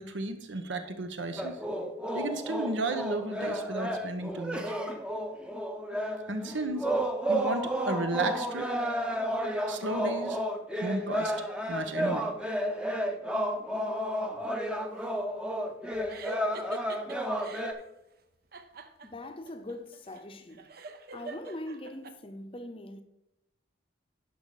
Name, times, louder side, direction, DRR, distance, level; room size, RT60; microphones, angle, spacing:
voice 1, 0.0-1.6 2.1-4.7 6.3-6.9 7.3-8.7 9.7-10.4 10.8-11.3 11.7-12.3, right 2 dB, 80° right, 1.1 m, -33 dB
sound 1, 1.4-17.7, equal, 5° right, 0.7 m, -32 dB
sound 2, 16.1-17.8 18.5-22.1, right 2 dB, 50° right, 0.7 m, -44 dB
voice 2, 19.0-20.7 21.1-23.0, left 1 dB, 30° left, 0.7 m, -41 dB
10.5 x 5.7 x 4.9 m
head